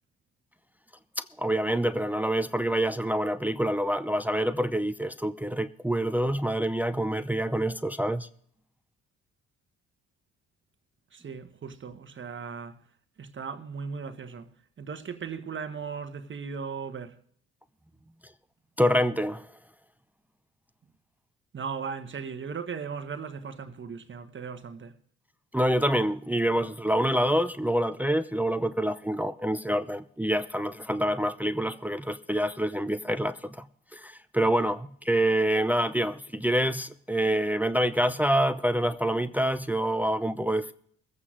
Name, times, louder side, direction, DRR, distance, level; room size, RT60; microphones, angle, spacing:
voice 1, 1.4-8.3 18.8-19.5 25.5-33.7 33.9-40.7, right 1 dB, 5° right, 0.7 m, -26 dB
voice 2, 11.1-12.8 13.2-17.2 21.5-25.0, right 6 dB, 40° right, 1.2 m, -37 dB
22.5 x 8.5 x 3.7 m
supercardioid pair, 65°, 29 cm